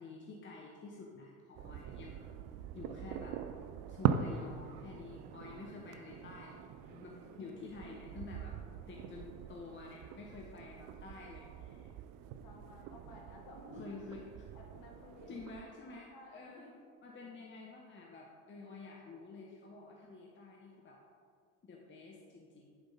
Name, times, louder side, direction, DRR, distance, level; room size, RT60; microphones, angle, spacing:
voice 1, 0.0-2.4 2.7-3.4 3.9-6.6 7.0-8.5 8.9-11.9 13.8-14.5 15.3-16.7 17.0-21.0 21.6-22.7, left 3 dB, 25° left, -1 dB, 1.1 m, -50 dB
sound 1, 1.5-15.6, right 9 dB, 50° right, 0.5 m, -42 dB
voice 2, 6.9-7.5 12.4-14.0 14.5-15.6 16.1-16.8, left 2 dB, 50° left, -1 dB, 2.1 m, -54 dB
10.5 x 5.0 x 4.1 m, 2.2 s
hypercardioid pair, 75°, 43 cm